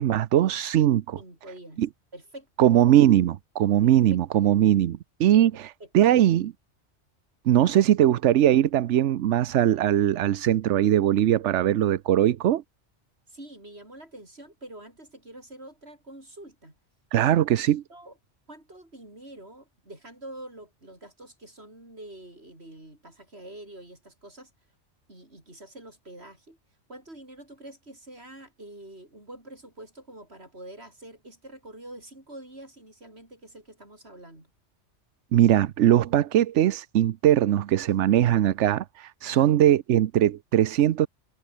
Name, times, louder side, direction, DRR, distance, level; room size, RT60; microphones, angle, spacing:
voice 1, 0.0-1.2 1.8-1.9 2.6-6.5 7.5-12.6 17.1-17.8 35.3-41.1, right 11 dB, 80° right, 1.0 m, -21 dB
voice 2, 1.2-1.8 2.1-2.7 3.8-3.9 5.8-6.2 13.3-16.7 17.5-17.6 17.9-18.2 18.5-24.5 25.1-26.6 26.9-34.5 39.2-39.5, right 1 dB, 60° right, 7.6 m, -46 dB
omnidirectional pair, 1.2 m